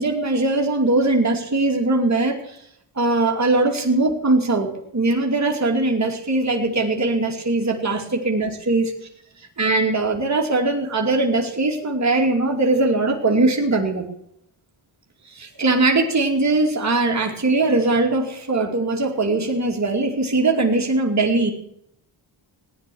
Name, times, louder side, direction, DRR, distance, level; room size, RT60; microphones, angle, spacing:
voice 1, 0.0-2.6 3.0-8.9 9.6-14.1 15.3-21.5, right 2 dB, 35° right, 1 dB, 2.6 m, -20 dB
16.0 x 10.0 x 6.3 m, 0.74 s
cardioid pair, 65°, 50 cm